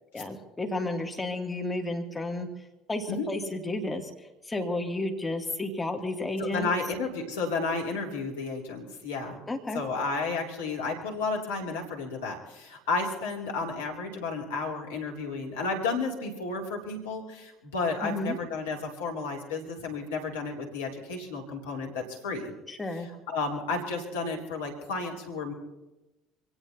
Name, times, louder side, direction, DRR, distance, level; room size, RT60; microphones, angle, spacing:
voice 1, 0.1-2.5 2.9-4.1 4.4-6.7 9.5-9.8 18.0-18.4 22.7-23.1, left 2 dB, 15° left, 2 dB, 2.7 m, -32 dB
voice 2, 6.4-9.4 9.7-22.5 23.3-25.5, left 3 dB, 75° left, 0 dB, 2.8 m, -32 dB
26.0 x 18.0 x 2.9 m, 1.0 s
figure-of-eight pair, 60°, 0 cm